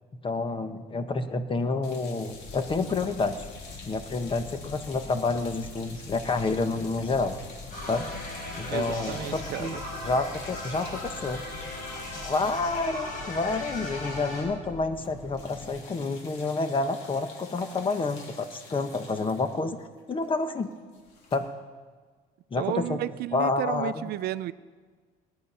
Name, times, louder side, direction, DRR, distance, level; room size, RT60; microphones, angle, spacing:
voice 1, 0.2-3.5 3.8-7.4 7.9-8.1 8.6-9.8 10.0-11.4 11.9-19.8 20.1-20.7 21.3-21.5 22.5-23.0 23.3-24.0, left 3 dB, 30° left, 9 dB, 1.1 m, -29 dB
sound 1, 1.8-14.2 14.5-14.7 14.9-21.4, left 4 dB, 90° left, 2.9 m, -49 dB
sound 2, 2.3-15.7, left 3 dB, 65° left, 5.5 m, -44 dB
sound 3, 7.7-14.4, left 1 dB, 50° left, 5.4 m, -38 dB
voice 2, 8.7-9.8 22.6-24.5, right 14 dB, 70° right, 16 dB, 0.5 m, -32 dB
19.0 x 10.5 x 5.6 m, 1.5 s
cardioid pair, 110°, 17 cm